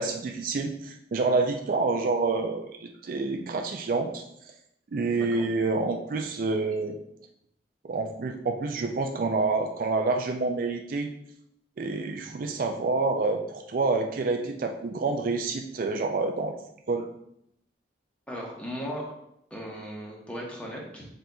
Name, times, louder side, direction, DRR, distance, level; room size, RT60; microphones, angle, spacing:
voice 1, 0.0-4.2 4.9-7.0 7.8-11.1 11.8-16.6 16.9-17.1, right 3 dB, 50° right, 4 dB, 0.4 m, -28 dB
voice 2, 5.1-5.4 18.3-19.0 19.5-21.1, equal, 5° left, -3 dB, 0.9 m, -37 dB
5.8 x 3.8 x 2.3 m, 0.77 s
head